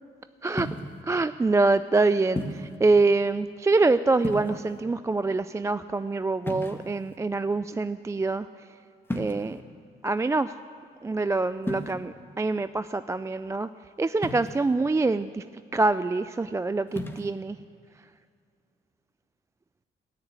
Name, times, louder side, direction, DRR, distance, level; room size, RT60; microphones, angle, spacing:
voice 1, 0.4-0.7 1.0-8.5 9.1-9.6 10.0-10.6 11.0-13.7 14.0-15.4 15.7-17.6, right 3 dB, 15° right, 13 dB, 0.3 m, -25 dB
sound 1, 0.6-1.0 2.4-2.8 4.2-4.8 6.4-7.2 9.1-9.6 11.6-11.9 14.2-14.7 16.9-17.3, left 1 dB, 10° left, 1.5 m, -34 dB
13.5 x 9.9 x 9.6 m, 2.4 s
cardioid pair, 90°, 20 cm